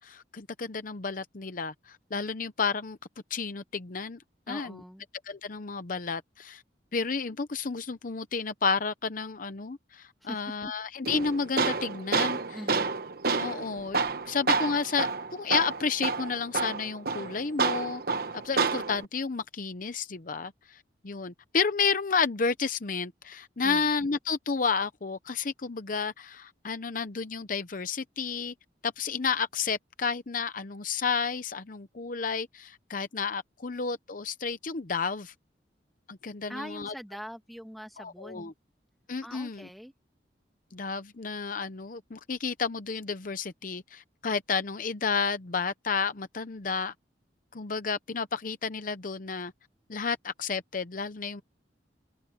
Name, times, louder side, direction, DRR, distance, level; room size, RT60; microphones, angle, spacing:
voice 1, 0.0-3.0 3.3-4.2 4.5-4.8 5.3-6.6 6.9-12.6 13.4-14.0 14.3-18.0 18.4-28.5 28.8-35.3 36.1-36.9 38.0-38.5 39.1-39.7 40.7-46.9 47.5-49.5 49.9-51.4, left 5 dB, 50° left, 0.8 m, -31 dB
voice 2, 4.5-5.1 10.2-10.5 12.5-12.9 23.6-23.9 36.5-38.5 39.2-39.9, equal, ahead, 2.2 m, -42 dB
Tools, 11.1-19.1, right 4 dB, 60° right, 1.1 m, -29 dB
open air
head